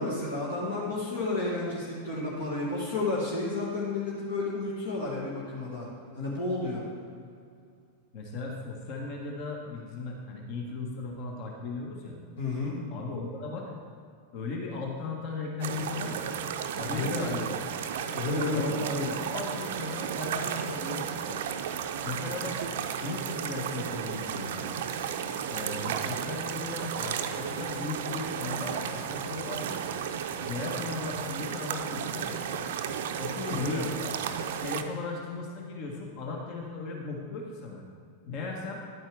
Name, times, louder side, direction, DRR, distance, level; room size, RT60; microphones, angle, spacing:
voice 1, 0.0-5.9 6.2-6.8 12.4-12.8 16.8-17.3 18.1-19.1 33.5-33.9, left 2 dB, 65° left, -5 dB, 1.9 m, -31 dB
voice 2, 8.1-12.2 12.9-13.7 14.3-16.4 16.8-17.8 18.5-21.4 22.0-22.6 23.0-24.7 25.5-29.8 30.4-32.6 33.2-33.9 34.6-37.8 38.3-38.8, left 3 dB, 45° left, 0 dB, 1.4 m, -37 dB
sound 1, 15.6-34.8, right 8 dB, 55° right, 0.5 m, -34 dB
11.0 x 8.8 x 3.5 m, 2.3 s
figure-of-eight pair, 90°, 0 cm